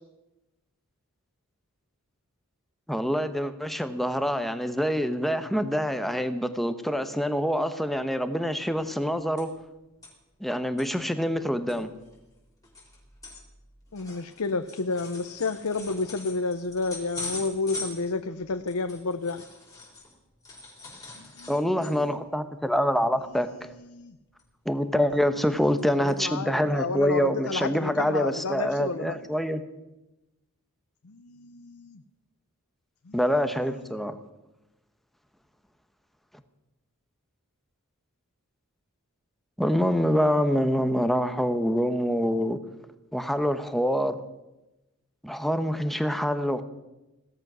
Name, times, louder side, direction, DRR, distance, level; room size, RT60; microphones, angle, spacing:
voice 1, 2.9-9.5 10.4-11.9 21.5-23.5 24.7-29.6 33.1-34.2 39.6-42.6 43.1-44.1 45.2-46.6, equal, ahead, 9 dB, 1.0 m, -26 dB
sound 1, 8.7-9.7 10.0-10.1 10.6-10.9 11.4-11.5 11.7-20.1 20.4-22.2 22.6-22.8 23.1-23.3 24.4-24.9 25.4-25.8 26.1-26.2 26.8-26.9, left 3 dB, 15° left, 4.7 m, -42 dB
voice 2, 13.9-19.4 21.2-22.2 23.5-24.2 25.5-25.7 26.0-29.3 31.0-32.0 33.1-33.2, left 3 dB, 90° left, 9 dB, 0.7 m, -31 dB
17.0 x 13.0 x 6.1 m, 0.98 s
head